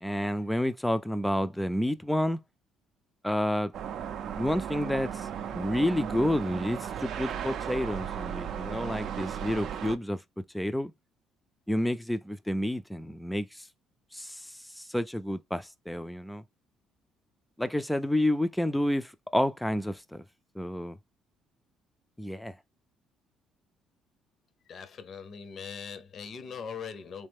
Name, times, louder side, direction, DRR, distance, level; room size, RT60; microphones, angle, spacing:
voice 1, 0.0-2.4 3.2-3.7 4.4-5.3 5.5-10.2 10.5-10.9 11.7-13.6 14.1-16.4 17.6-20.2 20.6-21.0 22.2-22.6, left 1 dB, 5° left, 0.4 m, -29 dB
sound 1, 3.7-10.0, right 8 dB, 60° right, 0.4 m, -35 dB
voice 2, 24.7-27.3, left 6 dB, 45° left, 0.6 m, -41 dB
3.2 x 3.2 x 3.4 m
cardioid pair, 115°, 0 cm